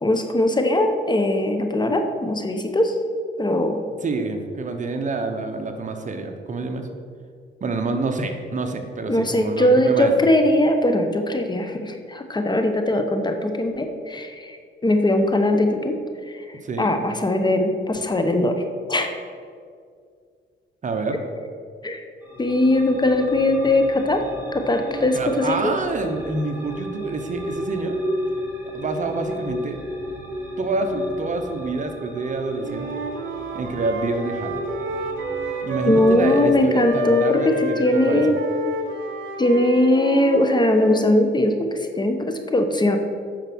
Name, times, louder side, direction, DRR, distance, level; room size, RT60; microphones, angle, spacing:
voice 1, 0.0-2.9 3.4-3.8 9.1-14.6 14.8-16.0 16.3-18.6 18.9-19.1 21.8-22.0 22.4-24.2 24.5-25.7 35.9-38.4 39.4-43.0, left 1 dB, 20° left, 6 dB, 1.0 m, -20 dB
voice 2, 4.0-6.9 7.6-10.1 16.6-17.0 20.8-21.2 25.1-27.9 28.7-29.8 30.6-33.0 33.5-34.6 35.6-38.2, right 3 dB, 40° right, 5 dB, 1.1 m, -27 dB
sound 1, 22.2-36.5, equal, 10° right, 2.1 m, -34 dB
Wind instrument woodwind instrument, 32.6-36.5 36.8-41.0, equal, 75° right, 1.6 m, -29 dB
8.9 x 5.8 x 6.1 m, 2.1 s
cardioid pair, 90°, 20 cm